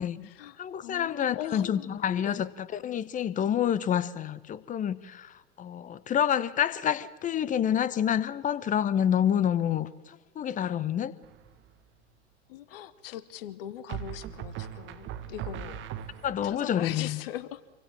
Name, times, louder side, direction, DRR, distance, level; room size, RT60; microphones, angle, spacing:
voice 1, 0.0-2.5 12.5-15.9 16.4-17.6, left 11 dB, 50° left, 1.3 m, -41 dB
voice 2, 0.6-11.1 16.2-17.2, left 9 dB, 20° left, 1.0 m, -28 dB
sound 1, 11.2-11.7 13.9-16.6, right 10 dB, 30° right, 1.8 m, -39 dB
27.5 x 24.0 x 7.6 m
figure-of-eight pair, 95°, 36 cm